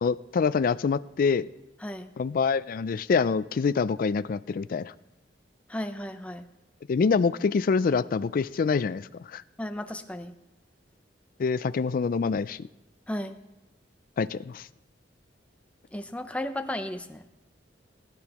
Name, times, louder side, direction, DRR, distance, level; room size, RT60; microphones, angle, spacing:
voice 1, 0.0-1.5 2.2-4.9 6.9-9.4 11.4-12.7 14.2-14.7, left 5 dB, 50° left, 15 dB, 0.3 m, -26 dB
voice 2, 1.8-2.1 5.7-6.5 9.6-10.3 13.1-13.3 15.9-17.3, left 1 dB, 5° left, 7 dB, 0.6 m, -34 dB
19.5 x 11.5 x 3.0 m, 0.95 s
head